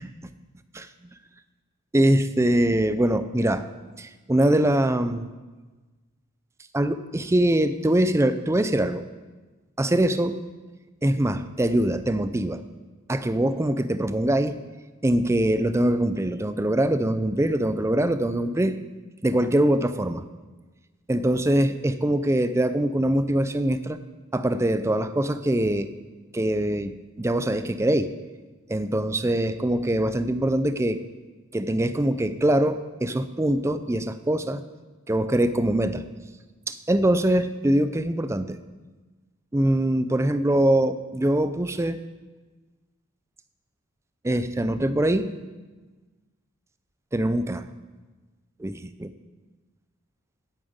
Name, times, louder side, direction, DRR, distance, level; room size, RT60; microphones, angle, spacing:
voice 1, 1.9-3.7 4.0-5.3 6.7-9.1 9.8-10.4 11.0-12.6 13.1-14.6 15.0-18.8 19.2-20.2 21.1-24.0 24.3-25.9 26.3-28.1 28.7-31.0 31.5-34.6 35.1-36.0 36.7-38.6 39.5-42.0 44.2-45.3 47.1-47.7 48.6-49.1, right 1 dB, 10° right, 11 dB, 0.4 m, -23 dB
9.0 x 8.8 x 7.9 m, 1.3 s
head